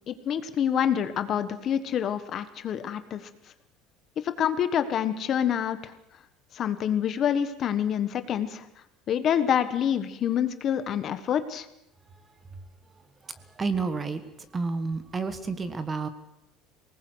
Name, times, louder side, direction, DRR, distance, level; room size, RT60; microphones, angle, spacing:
voice 1, 0.1-3.2 4.2-5.9 6.5-8.6 9.1-11.6, left 9 dB, 35° left, 11 dB, 1.4 m, -27 dB
voice 2, 13.6-14.2 14.5-16.1, right 4 dB, 15° right, 11 dB, 1.4 m, -29 dB
23.5 x 19.5 x 8.1 m, 0.85 s
cardioid pair, 165°, 0 cm